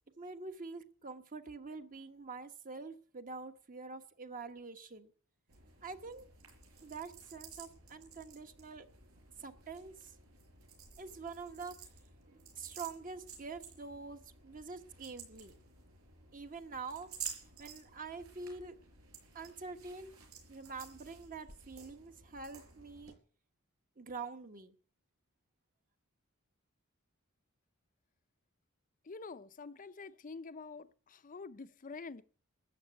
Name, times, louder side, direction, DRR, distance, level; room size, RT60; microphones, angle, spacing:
voice 1, 0.2-5.1 5.8-6.3 6.8-8.9 9.4-10.2 11.0-11.7 12.3-15.6 16.3-17.1 17.6-18.8 19.3-20.1 20.5-23.1 24.0-24.7, right 4 dB, 40° right, 1.2 m, -46 dB
sound 1, 5.5-23.1, right 6 dB, 80° right, 5.5 m, -53 dB
voice 2, 29.0-32.2, left 4 dB, 40° left, 0.6 m, -47 dB
13.5 x 9.3 x 7.9 m
head